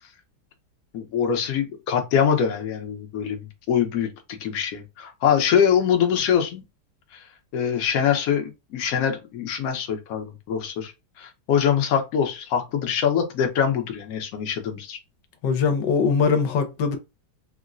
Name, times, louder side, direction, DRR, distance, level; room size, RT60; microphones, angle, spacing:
voice 1, 0.9-4.1 4.4-6.6 7.1-7.2 7.5-10.9 11.2-15.0, left 8 dB, 65° left, 1.1 m, -23 dB
voice 2, 15.4-17.0, left 5 dB, 85° left, 1.3 m, -21 dB
3.7 x 2.1 x 2.4 m
omnidirectional pair, 1.9 m